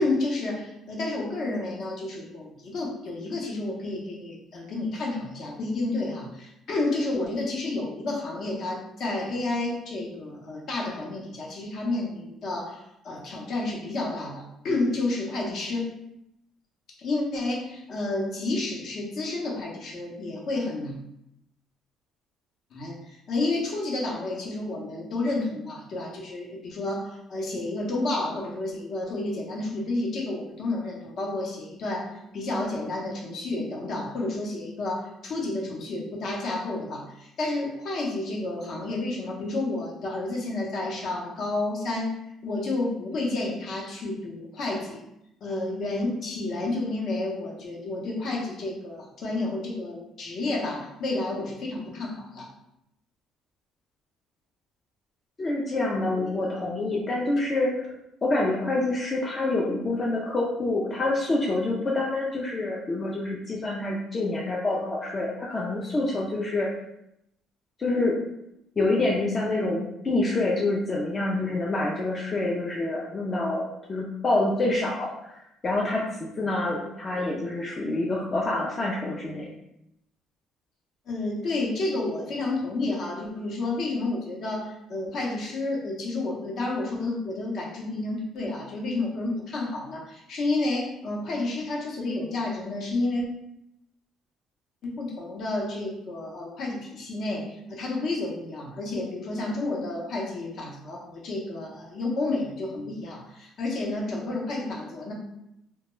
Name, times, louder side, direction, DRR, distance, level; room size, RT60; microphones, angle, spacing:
voice 1, 0.0-15.9 17.0-20.9 22.7-42.2 42.4-45.0 45.4-52.5 81.1-93.2 94.8-105.1, left 2 dB, 55° left, -2 dB, 0.7 m, -30 dB
voice 2, 55.4-57.9 58.2-66.7 67.8-68.2 68.8-75.4 75.6-76.0 76.4-79.5, left 2 dB, 30° left, -3 dB, 0.4 m, -27 dB
2.2 x 2.1 x 3.0 m, 0.81 s
cardioid pair, 125°, 0 cm